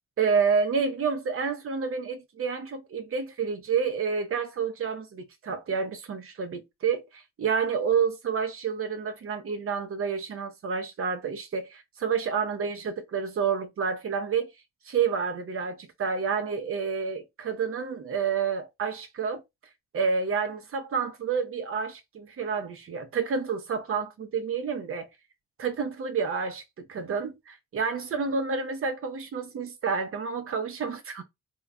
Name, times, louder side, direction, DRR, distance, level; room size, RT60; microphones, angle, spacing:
voice 1, 0.2-14.5 14.8-19.4 19.9-25.1 25.6-31.2, right 6 dB, 45° right, 0.8 m, -29 dB
3.6 x 3.1 x 2.3 m
cardioid pair, 90°, 30 cm